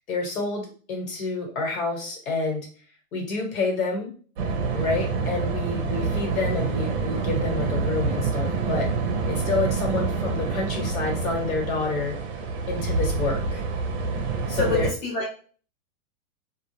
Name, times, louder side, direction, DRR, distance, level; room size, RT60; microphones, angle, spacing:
voice 1, 0.1-2.6 3.1-4.1 4.7-8.9 9.3-12.1 12.6-13.6 14.5-14.9, left 3 dB, 80° left, 1 dB, 1.3 m, -28 dB
sound 1, 4.4-14.9, right 4 dB, 50° right, 0.6 m, -27 dB
voice 2, 14.5-15.4, left 3 dB, 15° left, -5 dB, 0.4 m, -29 dB
2.3 x 2.0 x 2.9 m, 0.41 s
supercardioid pair, 155°, 41 cm